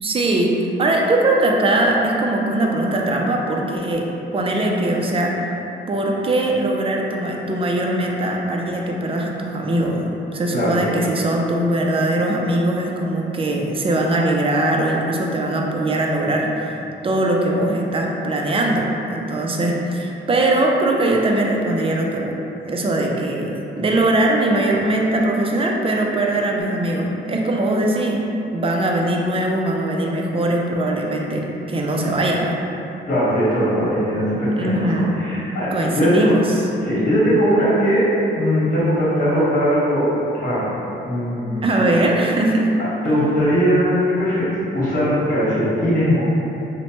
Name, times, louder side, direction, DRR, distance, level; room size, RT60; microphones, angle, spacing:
voice 1, 0.0-4.1 4.3-5.4 5.9-16.8 17.0-22.4 22.7-32.6 34.5-35.1 35.7-36.7 41.6-42.8, right 1 dB, 30° right, 0 dB, 0.4 m, -21 dB
voice 2, 33.1-34.9 35.2-36.1 36.8-38.1 38.3-40.7 41.1-41.6 43.0-46.2, equal, 45° left, -9 dB, 1.2 m, -19 dB
2.9 x 2.1 x 2.9 m, 2.9 s
cardioid pair, 75°, 20 cm